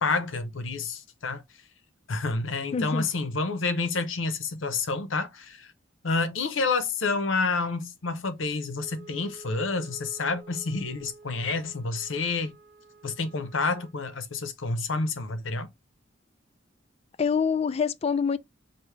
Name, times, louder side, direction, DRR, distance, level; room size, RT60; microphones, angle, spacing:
voice 1, 0.0-1.4 2.1-5.7 6.0-12.5 13.0-15.7, left 3 dB, 90° left, 0.8 m, -29 dB
voice 2, 2.7-3.1 17.2-18.4, left 6 dB, 30° left, 0.3 m, -25 dB
Wind instrument woodwind instrument, 8.7-14.0, right 2 dB, 60° right, 0.7 m, -50 dB
5.0 x 2.7 x 3.1 m
head